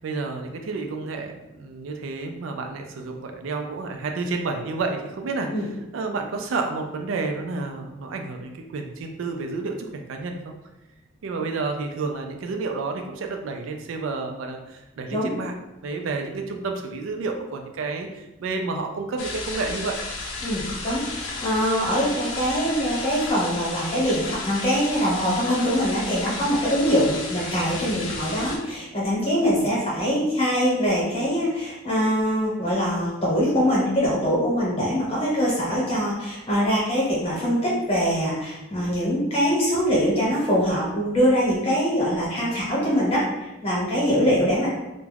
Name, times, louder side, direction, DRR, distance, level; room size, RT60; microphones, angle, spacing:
voice 1, 0.0-5.7 5.9-10.5 11.2-15.5 15.8-20.0 29.4-29.7 44.2-44.3, right 3 dB, 80° right, 4 dB, 0.4 m, -30 dB
sound 1, 19.2-28.6, left 3 dB, 85° left, 0.5 m, -33 dB
voice 2, 20.4-44.7, equal, 30° left, -6 dB, 0.9 m, -23 dB
2.3 x 2.1 x 3.2 m, 0.99 s
head